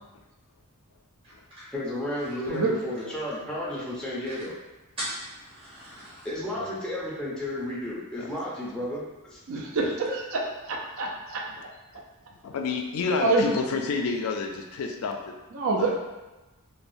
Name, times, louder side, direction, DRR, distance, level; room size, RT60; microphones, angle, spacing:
sound 1, 1.2-3.6 3.9-4.0 4.2-4.5 5.0-6.3, right 1 dB, 25° right, 0.8 m, -41 dB
voice 1, 1.7-4.5 6.2-9.4, left 1 dB, 5° left, -7 dB, 0.4 m, -32 dB
voice 2, 9.5-11.4 13.2-13.5 15.5-15.9, right 3 dB, 60° right, 0 dB, 0.4 m, -26 dB
voice 3, 12.4-15.3 15.8-16.0, left 4 dB, 65° left, 3 dB, 0.3 m, -29 dB
3.2 x 2.1 x 2.6 m, 1.1 s
head